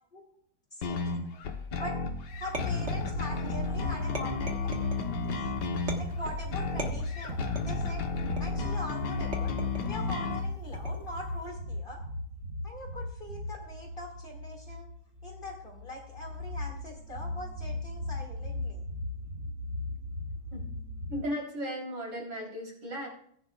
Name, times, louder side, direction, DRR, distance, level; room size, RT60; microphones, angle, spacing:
voice 1, 0.7-1.2 1.8-1.9 2.3-5.5 6.0-7.4 7.6-8.0 8.4-9.5 9.8-12.0 12.6-14.9 15.2-18.8, left 1 dB, 30° left, 0 dB, 2.4 m, -42 dB
sound 1, 0.8-10.4, left 4 dB, 85° left, 1.7 m, -33 dB
sound 2, 2.3-21.2, left 1 dB, 60° right, 3.1 m, -38 dB
sound 3, 2.5-3.5 4.1-5.1 5.9-6.3 6.8-7.8 8.4-8.8 9.3-10.0 10.7-11.2, right 2 dB, 40° right, 1.6 m, -39 dB
voice 2, 4.0-4.3 20.5-20.6 21.1-23.1, equal, 80° right, -3 dB, 4.3 m, -36 dB
18.0 x 10.0 x 2.4 m, 0.67 s
omnidirectional pair, 1.8 m